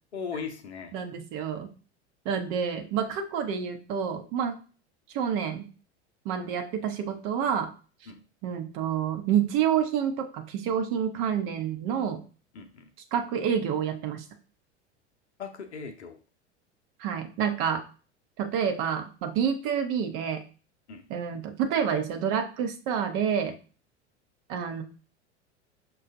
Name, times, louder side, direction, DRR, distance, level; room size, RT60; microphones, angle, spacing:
voice 1, 0.1-1.0 8.1-8.2 12.5-12.9 15.4-16.2 20.9-21.1, left 5 dB, 75° left, 7 dB, 0.7 m, -38 dB
voice 2, 0.9-1.7 2.2-4.5 5.1-5.7 6.2-7.7 8.4-12.2 13.1-14.2 17.0-17.8 18.4-20.4 21.1-23.6 24.5-24.8, right 8 dB, 45° right, 6 dB, 0.8 m, -28 dB
6.0 x 2.3 x 2.5 m, 0.37 s
figure-of-eight pair, 80°, 34 cm